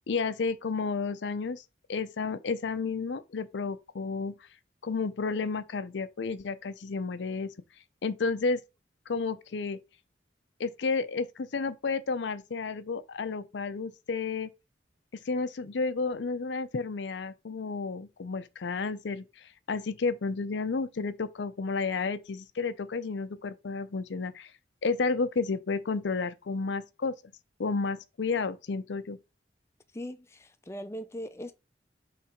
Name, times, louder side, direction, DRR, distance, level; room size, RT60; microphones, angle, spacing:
voice 1, 0.1-1.6 1.9-4.4 4.8-7.5 8.0-8.6 9.1-9.8 10.6-14.5 15.1-24.5 24.8-27.1 27.6-29.2, left 4 dB, 75° left, 0.5 m, -31 dB
voice 2, 29.9-31.5, equal, 15° left, 0.4 m, -40 dB
5.6 x 3.3 x 5.1 m
head